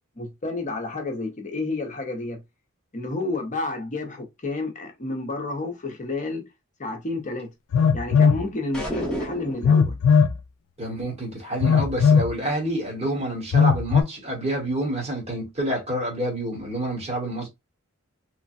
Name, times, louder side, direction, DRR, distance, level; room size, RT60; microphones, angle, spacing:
voice 1, 0.2-2.4 2.9-6.5 6.8-7.5 7.9-10.0, left 2 dB, 35° left, 0.8 m, -30 dB
Telephone, 7.7-8.4 9.6-10.4 11.6-12.3 13.5-14.0, left 6 dB, 65° left, 0.4 m, -18 dB
sound 1, 8.7-9.8, equal, 5° left, 0.9 m, -30 dB
voice 2, 10.8-17.5, right 1 dB, 30° right, 1.3 m, -28 dB
3.1 x 2.2 x 2.5 m
head